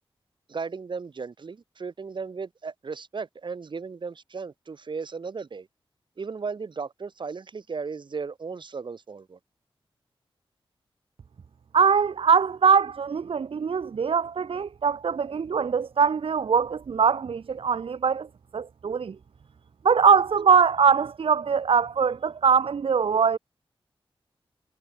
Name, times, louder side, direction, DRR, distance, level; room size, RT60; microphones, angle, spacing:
voice 1, 0.5-5.7 6.2-9.4, right 5 dB, 55° right, 7.7 m, -35 dB
voice 2, 11.7-18.3 18.5-19.2 19.8-23.4, right 6 dB, 70° right, 2.1 m, -22 dB
wide cardioid pair, 135°, 10 cm